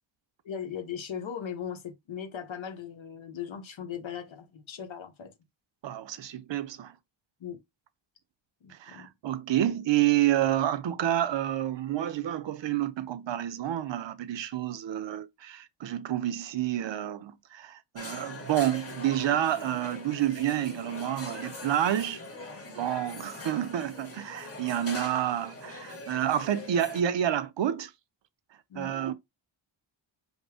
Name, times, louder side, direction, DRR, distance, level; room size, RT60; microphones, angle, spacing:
voice 1, 0.4-5.3 7.4-7.6 8.6-9.1 28.7-28.9, left 8 dB, 75° left, 1.0 m, -38 dB
voice 2, 5.8-6.9 8.7-22.2 22.7-27.9 28.7-29.1, right 11 dB, 70° right, 0.6 m, -29 dB
sound 1, 18.0-27.0, left 2 dB, 30° left, 1.4 m, -42 dB
5.3 x 2.1 x 4.8 m
wide cardioid pair, 120°, 46 cm